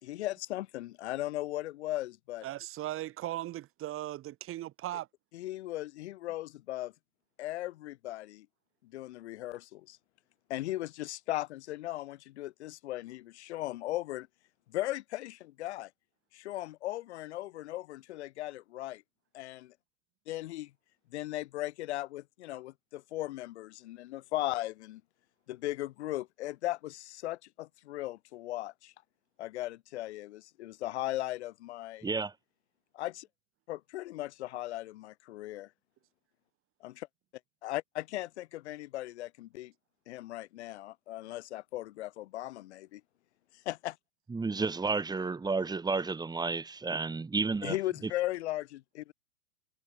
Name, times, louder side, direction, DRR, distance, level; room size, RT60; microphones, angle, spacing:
voice 1, 0.0-2.5 5.3-6.9 7.4-8.5 8.8-10.0 10.5-14.3 14.7-15.9 16.3-19.0 19.3-19.6 20.3-20.7 21.1-25.0 25.5-28.9 29.4-32.1 32.9-33.3 33.7-35.7 36.8-36.9 37.6-39.7 40.1-43.0 43.7-43.9 47.6-49.1, left 16 dB, 60° left, 3.5 m, -37 dB
voice 2, 2.4-5.1, right 14 dB, 35° right, 4.4 m, -38 dB
voice 3, 32.0-32.3 44.3-47.8, right 4 dB, 10° right, 2.4 m, -31 dB
hypercardioid pair, 100°, 37 cm